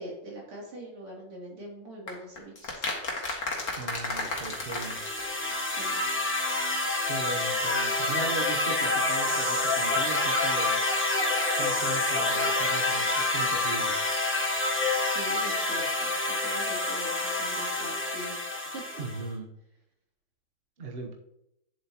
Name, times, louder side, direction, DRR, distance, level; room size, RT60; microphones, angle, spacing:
voice 1, 0.0-2.9 5.8-6.0 15.1-18.4 18.7-19.0, right 1 dB, 90° right, -3 dB, 3.7 m, -42 dB
sound 1, 2.1-6.1 6.3-6.4 6.6-6.7, left 2 dB, 40° left, 1.7 m, -34 dB
voice 2, 3.8-5.0 7.0-10.8 11.6-14.1 19.0-19.5 20.8-21.1, right 3 dB, 50° right, 2 dB, 0.7 m, -38 dB
sound 2, 4.2-19.2, left 2 dB, 10° left, 0.8 m, -28 dB
10.0 x 7.4 x 2.9 m, 0.82 s
omnidirectional pair, 2.3 m